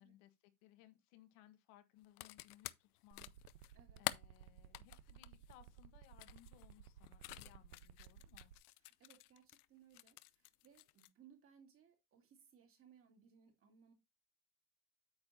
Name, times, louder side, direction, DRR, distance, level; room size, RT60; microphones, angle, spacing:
voice 1, 0.0-3.7 4.0-8.5, left 12 dB, 60° left, 1.6 m, -65 dB
sound 1, 2.0-9.6 9.9-11.1, left 18 dB, 85° left, 0.7 m, -48 dB
sound 2, 3.1-8.5, right 10 dB, 80° right, 1.0 m, -57 dB
voice 2, 8.8-13.9, right 8 dB, 30° right, 2.4 m, -66 dB
8.9 x 6.9 x 2.8 m
supercardioid pair, 135°, 45 cm